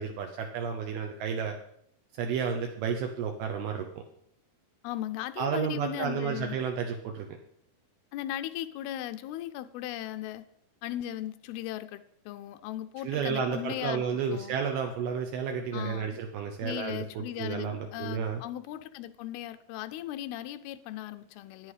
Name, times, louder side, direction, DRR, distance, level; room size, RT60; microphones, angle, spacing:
voice 1, 0.0-1.6 2.2-3.9 5.4-7.3 13.0-18.4, right 6 dB, 75° right, 3 dB, 2.7 m, -32 dB
voice 2, 4.8-6.6 8.1-10.4 10.8-14.5 15.7-16.2 16.6-21.7, left 13 dB, 80° left, 9 dB, 2.3 m, -37 dB
11.5 x 9.4 x 4.9 m, 0.70 s
omnidirectional pair, 4.7 m